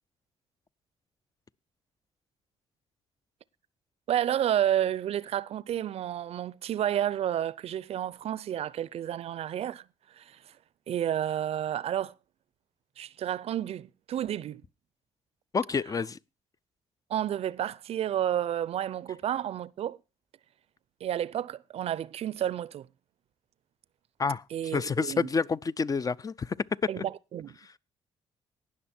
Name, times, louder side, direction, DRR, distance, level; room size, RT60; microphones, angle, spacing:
voice 1, 4.1-10.6 10.9-12.2 13.0-14.6 17.1-20.0 21.0-22.9 24.5-25.3 26.9-27.8, right 11 dB, 60° right, 0.5 m, -31 dB
voice 2, 15.5-16.2 24.2-26.6 27.0-27.1, left 5 dB, 30° left, 0.5 m, -29 dB
18.5 x 6.3 x 4.4 m
cardioid pair, 80°, 11 cm